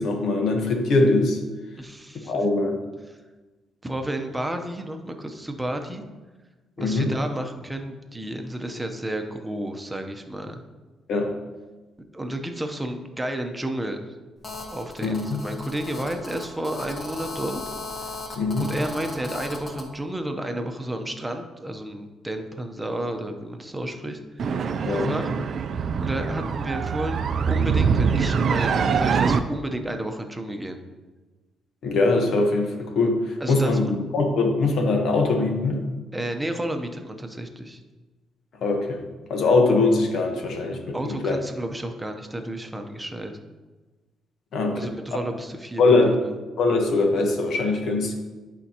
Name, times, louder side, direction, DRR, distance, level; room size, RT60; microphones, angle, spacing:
voice 1, 0.0-1.4 2.3-2.8 6.8-7.1 11.1-11.3 15.0-15.4 18.4-18.7 24.8-25.1 31.8-35.8 38.6-39.0 39.3-41.4 44.5-44.9 45.8-46.1 46.6-48.2, left 3 dB, 70° left, 3 dB, 1.2 m, -22 dB
voice 2, 1.8-2.3 3.8-6.0 6.8-10.6 12.1-14.1 14.7-17.6 18.6-24.6 24.9-25.3 26.0-27.2 27.5-30.8 33.4-33.9 36.1-37.8 40.9-43.3 44.8-46.3, right 1 dB, 10° right, 5 dB, 0.8 m, -31 dB
Telephone, 14.4-19.9, left 3 dB, 40° left, 1.3 m, -37 dB
sound 1, 24.4-29.4, right 6 dB, 55° right, 0.4 m, -23 dB
11.0 x 4.4 x 2.9 m, 1.2 s
cardioid pair, 90°, 0 cm